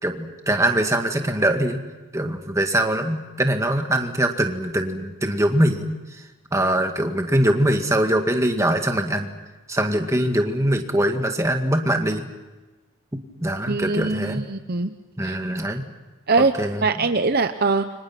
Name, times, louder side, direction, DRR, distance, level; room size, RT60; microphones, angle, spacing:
voice 1, 0.0-1.8 2.1-6.2 6.5-9.3 9.7-12.2 13.1-14.4 15.2-15.8 16.6-17.1, right 1 dB, 15° right, 4 dB, 2.0 m, -22 dB
voice 2, 13.7-14.9 15.2-15.4 16.3-16.5 16.8-18.0, right 3 dB, 45° right, 8 dB, 0.8 m, -22 dB
29.5 x 25.0 x 6.0 m, 1.2 s
head